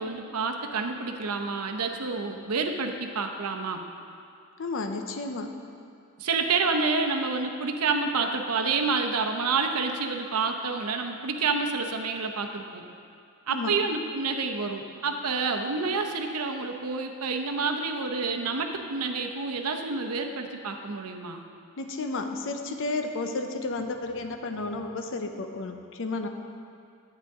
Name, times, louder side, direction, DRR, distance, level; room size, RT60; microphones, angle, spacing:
voice 1, 0.0-3.8 6.2-12.8 13.5-21.4, right 4 dB, 90° right, 4 dB, 0.8 m, -28 dB
voice 2, 4.6-5.5 13.5-13.7 21.8-26.3, left 3 dB, 60° left, 6 dB, 0.7 m, -32 dB
10.5 x 8.8 x 3.6 m, 2.4 s
head